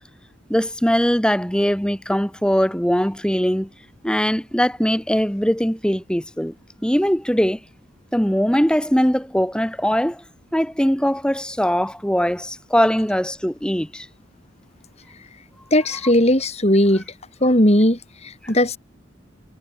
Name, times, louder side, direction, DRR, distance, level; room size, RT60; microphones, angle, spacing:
voice 1, 0.5-3.7 4.0-6.5 6.8-7.6 8.1-10.2 10.5-14.1, equal, 5° left, 2.6 m, -21 dB
voice 2, 15.7-17.0 17.4-18.8, left 1 dB, 35° left, 6.9 m, -17 dB
head